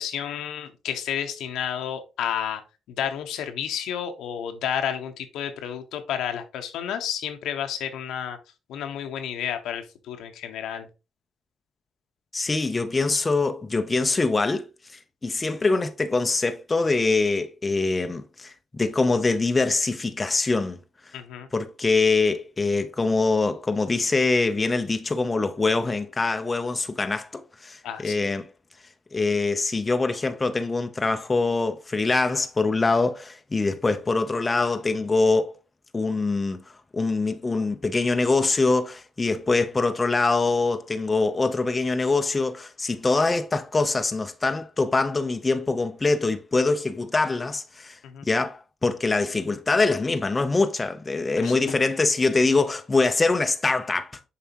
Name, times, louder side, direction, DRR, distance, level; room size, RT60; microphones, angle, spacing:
voice 1, 0.0-2.6 2.9-8.4 8.7-10.9 21.1-21.5 27.8-28.3 48.0-48.3 51.3-51.5, left 9 dB, 85° left, 1.0 m, -31 dB
voice 2, 12.3-14.7 14.9-20.8 21.5-28.5 29.1-35.5 35.9-36.6 36.9-54.3, left 3 dB, 25° left, 0.7 m, -24 dB
7.0 x 4.8 x 2.9 m
cardioid pair, 90°, 0 cm